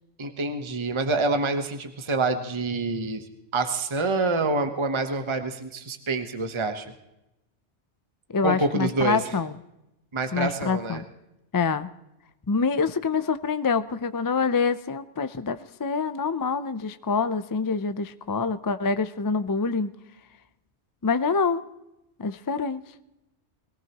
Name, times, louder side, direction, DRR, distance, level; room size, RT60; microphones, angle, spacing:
voice 1, 0.2-3.2 3.5-6.9 8.4-9.3 10.1-11.0, right 3 dB, 25° right, 6 dB, 1.0 m, -27 dB
voice 2, 8.3-9.6 10.3-11.0 11.5-11.9 12.5-19.9 21.0-21.6 22.2-22.8, left 5 dB, 30° left, 12 dB, 0.4 m, -26 dB
22.0 x 17.5 x 3.0 m, 0.91 s
omnidirectional pair, 1.2 m